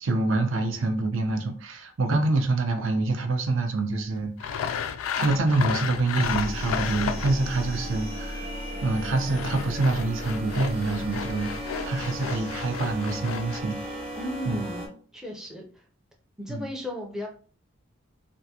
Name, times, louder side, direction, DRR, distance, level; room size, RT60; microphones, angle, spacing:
voice 1, 0.0-4.9 5.2-8.5 8.8-11.5 11.8-13.8 14.5-14.6 16.5-16.7, right 2 dB, 70° right, 5 dB, 0.6 m, -26 dB
Sawing, 4.4-7.6 9.0-13.6, left 7 dB, 80° left, 0.3 m, -33 dB
sound 1, 6.2-14.9, equal, 25° right, 0.8 m, -35 dB
voice 2, 14.2-15.8 16.4-17.3, left 1 dB, 5° right, 0 dB, 0.5 m, -35 dB
3.4 x 2.5 x 2.8 m, 0.41 s
head